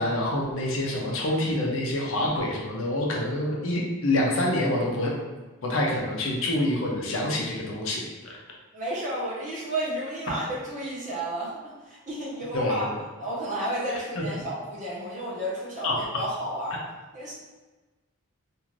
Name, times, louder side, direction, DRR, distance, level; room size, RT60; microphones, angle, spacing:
voice 1, 0.0-5.1 5.6-8.0 12.5-13.0 14.2-14.3 15.8-16.0, left 1 dB, 60° left, -2 dB, 0.6 m, -26 dB
voice 2, 8.7-12.9 13.2-16.8 17.1-17.3, right 1 dB, 35° right, -7 dB, 0.9 m, -32 dB
2.6 x 2.5 x 3.1 m, 1.2 s
head